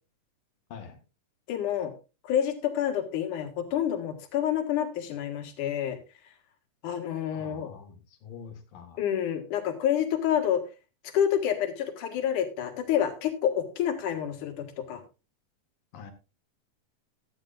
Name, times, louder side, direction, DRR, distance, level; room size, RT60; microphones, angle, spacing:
voice 1, 1.5-1.9 2.2-6.0 6.8-7.7 9.0-10.6 11.1-15.0, left 9 dB, 70° left, 5 dB, 3.2 m, -28 dB
voice 2, 7.3-9.0 15.9-16.1, left 6 dB, 90° left, 6 dB, 3.5 m, -45 dB
15.5 x 12.0 x 2.5 m, 0.30 s
omnidirectional pair, 3.8 m